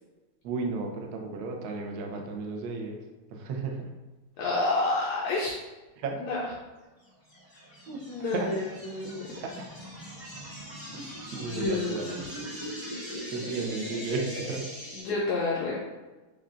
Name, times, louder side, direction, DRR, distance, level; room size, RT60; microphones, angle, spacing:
voice 1, 0.4-3.0 3.3-3.9 6.0-6.1 7.9-8.0 8.3-8.5 9.4-9.5 10.9-11.0 11.3-12.2 13.3-14.6, right 4 dB, 75° right, 2 dB, 0.9 m, -33 dB
voice 2, 4.4-5.6 6.2-6.4 8.1-9.2 11.4-12.1 15.0-15.8, left 3 dB, 80° left, -4 dB, 0.8 m, -29 dB
sound 1, 7.3-15.0, equal, 10° right, 1.0 m, -40 dB
6.6 x 2.2 x 2.4 m, 1.2 s
omnidirectional pair, 2.3 m